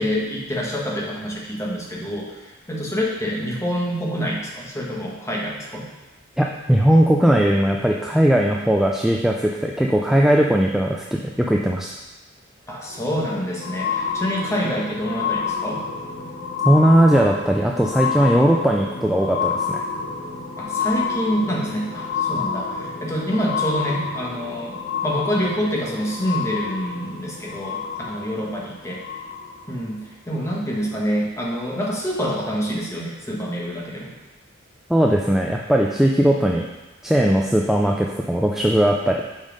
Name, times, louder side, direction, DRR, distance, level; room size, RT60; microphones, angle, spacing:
voice 1, 0.0-5.9 12.7-15.8 20.6-29.0 29.7-34.1, equal, 15° left, -3 dB, 1.2 m, -26 dB
voice 2, 6.4-11.9 16.6-19.8 34.9-36.6 37.0-39.2, right 1 dB, ahead, -1 dB, 0.3 m, -18 dB
sound 1, 12.9-29.8 30.5-30.6, left 5 dB, 80° left, 0.9 m, -29 dB
5.6 x 5.2 x 5.1 m, 1.1 s
head